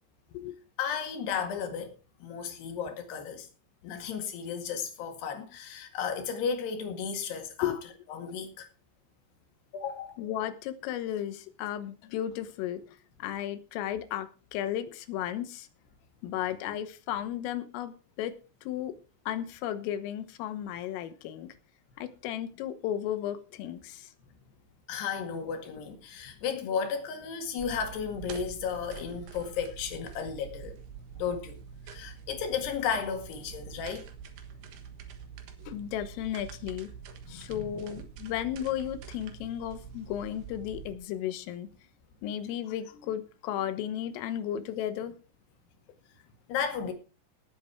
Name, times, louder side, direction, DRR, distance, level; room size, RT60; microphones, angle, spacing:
voice 1, 0.8-1.9 2.2-3.5 3.8-7.7 8.1-8.7 9.7-10.2 24.9-30.8 31.2-31.6 31.9-34.1 37.2-37.9 46.5-46.9, left 7 dB, 60° left, 3.8 m, -34 dB
voice 2, 10.2-12.8 13.2-15.7 16.2-18.3 18.6-19.0 19.3-21.5 22.0-24.1 35.7-36.9 37.3-41.7 42.2-45.1, left 11 dB, 80° left, 3.7 m, -34 dB
sound 1, 27.6-40.9, right 7 dB, 65° right, 2.9 m, -46 dB
18.5 x 8.0 x 4.6 m
omnidirectional pair, 5.8 m